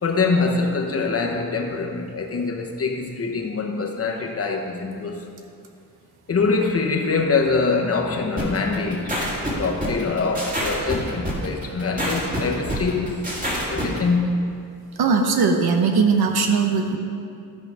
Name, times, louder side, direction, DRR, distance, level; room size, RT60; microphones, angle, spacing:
voice 1, 0.0-5.2 6.3-13.2 13.7-14.4, left 4 dB, 40° left, 2 dB, 1.0 m, -24 dB
sound 1, 8.4-14.0, equal, 20° right, 2.2 m, -26 dB
voice 2, 15.0-17.0, right 5 dB, 85° right, 4 dB, 1.1 m, -19 dB
13.5 x 5.8 x 4.8 m, 2.4 s
wide cardioid pair, 145°, 37 cm